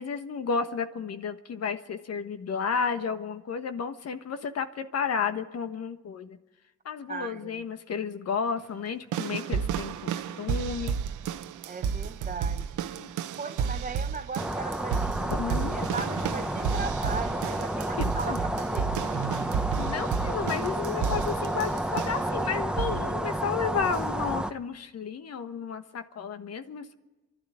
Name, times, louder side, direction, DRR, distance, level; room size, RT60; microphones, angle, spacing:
voice 1, 0.0-6.4 6.8-11.0 12.9-13.1 15.2-15.9 18.0-18.4 19.7-26.9, left 6 dB, 55° left, 1.3 m, -32 dB
voice 2, 7.1-7.6 11.6-12.9 13.4-15.3 15.7-18.9, right 4 dB, 25° right, 1.2 m, -37 dB
sound 1, 9.1-22.3 22.8-23.1 23.9-24.0, right 7 dB, 80° right, 1.0 m, -32 dB
sound 2, 14.4-24.5, right 1 dB, 5° right, 1.0 m, -31 dB
29.0 x 12.0 x 9.7 m
cardioid pair, 90°, 30 cm